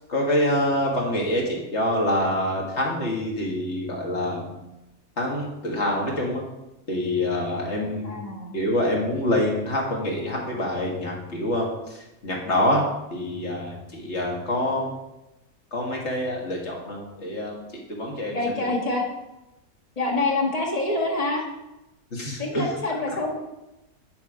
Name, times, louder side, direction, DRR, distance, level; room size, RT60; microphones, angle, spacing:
voice 1, 0.1-4.5 5.2-6.4 6.9-8.3 8.5-12.9 13.1-14.9 15.7-18.7 22.1-22.6, left 1 dB, 50° left, -1 dB, 2.0 m, -26 dB
voice 2, 8.0-8.6 18.3-19.0 20.0-21.5 22.4-23.4, left 2 dB, 25° left, 0 dB, 1.4 m, -26 dB
9.9 x 4.7 x 5.0 m, 0.97 s
omnidirectional pair, 1.5 m